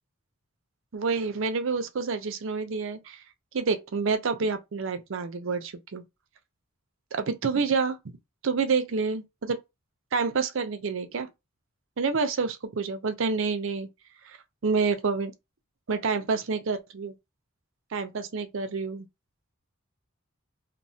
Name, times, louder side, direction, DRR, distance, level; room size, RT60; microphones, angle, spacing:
voice 1, 0.9-3.2 3.5-6.0 7.1-8.0 8.4-9.6 10.1-11.3 12.0-13.9 14.2-14.4 14.6-15.3 15.9-17.1 17.9-19.1, right 4 dB, 65° right, 0.5 m, -28 dB
3.0 x 2.1 x 2.7 m
head